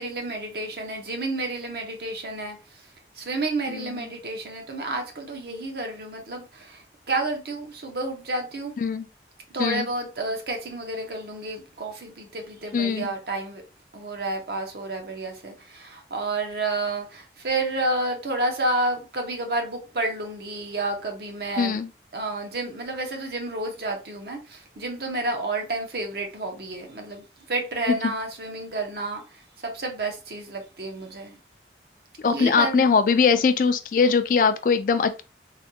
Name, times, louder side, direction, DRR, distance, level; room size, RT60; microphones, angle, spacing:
voice 1, 0.0-2.8 3.1-8.7 9.5-13.6 13.9-21.8 22.1-31.4 32.3-32.9, right 2 dB, 60° right, 0.8 m, -30 dB
voice 2, 3.7-4.1 8.8-9.1 9.6-9.9 12.7-13.1 21.6-21.9 32.2-35.2, left 5 dB, 50° left, 0.3 m, -21 dB
3.3 x 2.2 x 2.7 m
head